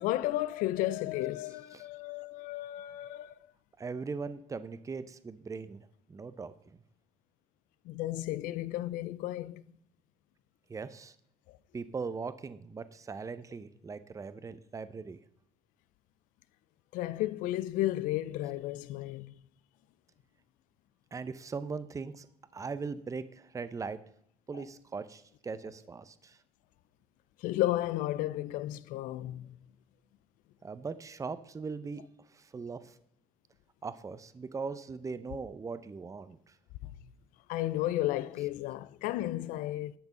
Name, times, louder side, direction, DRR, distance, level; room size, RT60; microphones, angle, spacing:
voice 1, 0.0-3.3 7.9-9.6 11.5-11.6 16.9-19.4 24.5-24.6 27.4-29.6 36.8-36.9 37.5-39.9, left 15 dB, 85° left, 0.5 m, -33 dB
voice 2, 3.8-6.5 10.7-11.1 11.7-15.2 21.1-22.3 22.5-24.0 24.5-26.4 30.6-32.0 32.3-33.0 33.8-36.5, right 4 dB, 25° right, 0.7 m, -40 dB
11.0 x 6.0 x 5.4 m
cardioid pair, 85°, 13 cm